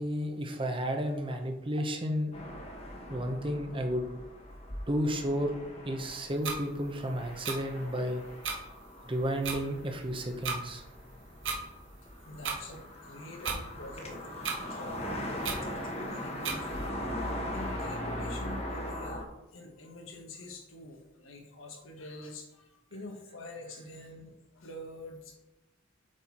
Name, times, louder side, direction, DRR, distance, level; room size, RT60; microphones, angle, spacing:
voice 1, 0.0-2.3 3.1-4.0 4.9-5.5 5.8-8.2 9.1-10.8, equal, 25° right, 4 dB, 0.8 m, -32 dB
sound 1, 2.3-19.2, left 1 dB, 30° left, 1.0 m, -40 dB
sound 2, 6.4-6.6 7.4-7.6 8.4-8.6 9.4-9.6 10.4-10.6 11.4-11.6 12.4-12.6 13.4-13.6 14.4-14.6 15.4-15.6 16.4-16.6, right 5 dB, 65° right, 1.2 m, -33 dB
voice 2, 12.2-14.2 14.7-16.8 17.2-19.3 19.5-25.4, left 1 dB, 85° left, 2 dB, 1.5 m, -46 dB
7.8 x 4.4 x 4.3 m, 0.95 s
head